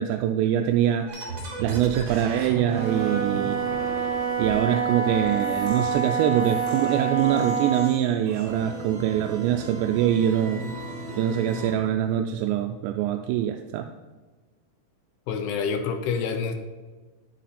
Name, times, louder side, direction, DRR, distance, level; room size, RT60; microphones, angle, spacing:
voice 1, 0.0-3.6 4.0-4.1 4.4-10.7 11.1-13.9, right 10 dB, 85° right, 6 dB, 2.5 m, -24 dB
sound 1, 1.1-11.7, right 1 dB, 40° right, 3.0 m, -38 dB
Wind instrument woodwind instrument, 2.6-8.0, right 6 dB, 60° right, 4.9 m, -27 dB
voice 2, 15.3-16.5, left 5 dB, 80° left, 6 dB, 2.3 m, -27 dB
10.5 x 8.5 x 4.1 m, 1.3 s
omnidirectional pair, 5.4 m